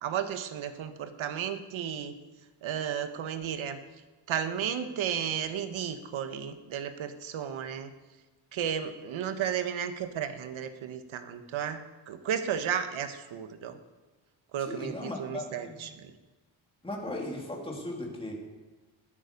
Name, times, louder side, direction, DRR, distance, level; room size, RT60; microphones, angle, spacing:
voice 1, 0.0-2.2 2.6-3.8 4.3-7.9 8.5-13.8 14.5-16.1, right 8 dB, 75° right, 9 dB, 1.4 m, -33 dB
voice 2, 14.6-15.7 16.8-18.3, left 1 dB, 10° left, -1 dB, 2.8 m, -37 dB
20.5 x 9.1 x 5.3 m, 1.2 s
wide cardioid pair, 155°, 48 cm